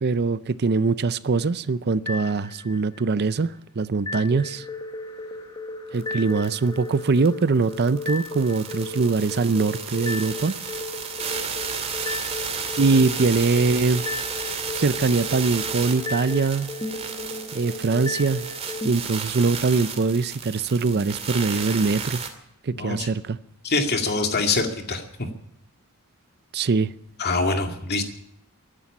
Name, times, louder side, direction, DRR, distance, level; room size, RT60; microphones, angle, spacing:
voice 1, 0.0-4.6 5.9-10.6 12.8-14.0 14.7-16.7 17.5-18.5 18.8-22.2 22.6-23.4 26.5-26.9, right 4 dB, 50° right, 0.5 m, -22 dB
sound 1, 2.1-3.0 4.1-18.9, left 2 dB, 20° left, 1.5 m, -35 dB
sound 2, 6.0-6.1 6.3-22.3, right 6 dB, 30° right, 2.3 m, -33 dB
voice 2, 22.7-23.1 23.6-25.0 27.2-28.0, left 3 dB, 50° left, 2.3 m, -24 dB
14.0 x 11.5 x 8.7 m
head